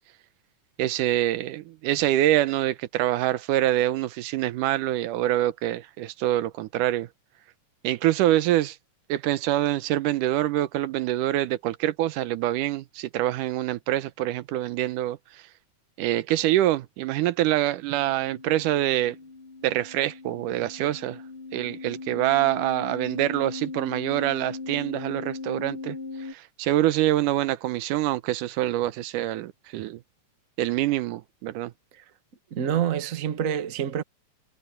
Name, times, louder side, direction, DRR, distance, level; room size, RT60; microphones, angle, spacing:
voice 1, 0.8-7.1 7.8-8.8 9.1-15.4 16.0-19.2 19.6-21.2 21.5-30.0 30.6-31.7, right 14 dB, 85° right, 2.4 m, -25 dB
sound 1, 17.9-26.3, left 3 dB, 80° left, 8.7 m, -38 dB
voice 2, 32.5-34.0, right 9 dB, 55° right, 0.8 m, -27 dB
omnidirectional pair, 3.6 m